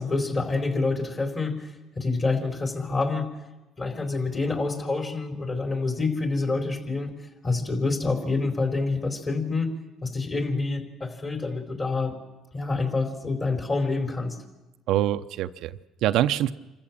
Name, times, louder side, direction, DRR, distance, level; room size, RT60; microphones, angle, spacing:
voice 1, 0.0-3.3 3.8-7.1 7.4-9.7 10.0-12.2 12.5-14.4, left 3 dB, 30° left, 5 dB, 4.2 m, -27 dB
voice 2, 14.9-16.5, right 12 dB, 70° right, 10 dB, 0.6 m, -25 dB
26.5 x 14.5 x 7.4 m, 1.1 s
supercardioid pair, 85°, 0 cm